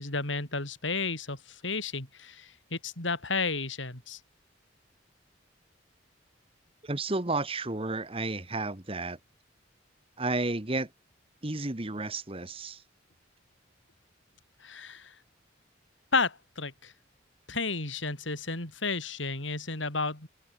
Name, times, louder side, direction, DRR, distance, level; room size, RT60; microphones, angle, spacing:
voice 1, 0.0-4.2 14.6-15.1 16.1-16.9 17.5-20.3, left 4 dB, 75° left, 6.0 m, -32 dB
voice 2, 6.8-9.2 10.2-10.9 11.4-12.8, right 2 dB, 30° right, 1.5 m, -32 dB
open air
head